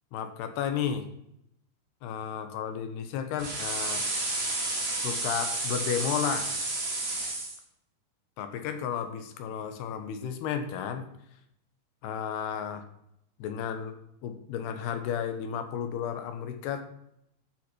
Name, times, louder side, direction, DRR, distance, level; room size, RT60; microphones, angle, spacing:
voice 1, 0.1-1.1 2.0-4.0 4.6-6.5 8.4-11.1 12.0-12.8 13.4-13.9 14.2-16.8, left 8 dB, 75° left, 8 dB, 3.0 m, -33 dB
sound 1, 3.4-7.6, right 2 dB, 60° right, 0.6 m, -31 dB
13.0 x 5.8 x 6.0 m, 0.78 s
omnidirectional pair, 4.9 m